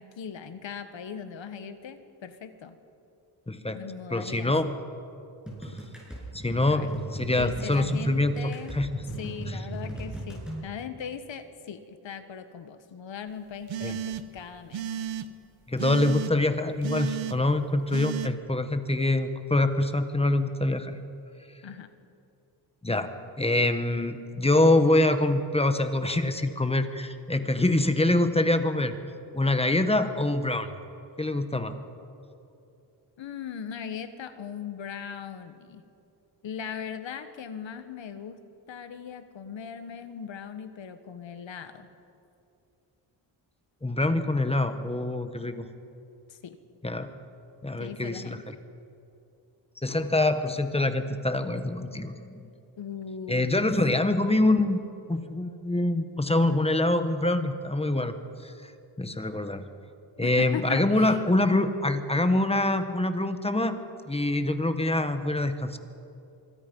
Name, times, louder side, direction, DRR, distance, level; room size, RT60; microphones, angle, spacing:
voice 1, 0.0-2.8 3.7-4.5 6.7-7.0 7.3-8.7 9.2-14.8 21.6-21.9 33.2-35.8 36.4-38.4 38.7-41.9 46.3-46.6 47.8-48.4 52.8-53.5 53.9-54.0 60.2-61.2, left 7 dB, 80° left, 9 dB, 1.5 m, -39 dB
voice 2, 3.5-3.8 4.1-4.7 6.3-8.3 8.7-8.9 9.5-9.6 13.8-13.9 15.7-21.0 22.8-29.0 29.3-30.7 31.2-31.8 43.8-45.7 46.8-47.1 47.6-48.5 49.8-52.5 53.3-54.8 55.1-58.2 58.4-58.7 59.0-59.6 60.2-63.8 64.1-65.8, left 2 dB, 15° left, 9 dB, 1.3 m, -25 dB
sound 1, 5.5-10.6, right 1 dB, ahead, 7.3 m, -37 dB
sound 2, 13.7-14.4 14.7-15.3 15.8-16.3 16.8-17.4 17.9-18.3, right 9 dB, 85° right, 1.1 m, -33 dB
25.5 x 23.0 x 5.5 m, 2.7 s
wide cardioid pair, 110°, 45 cm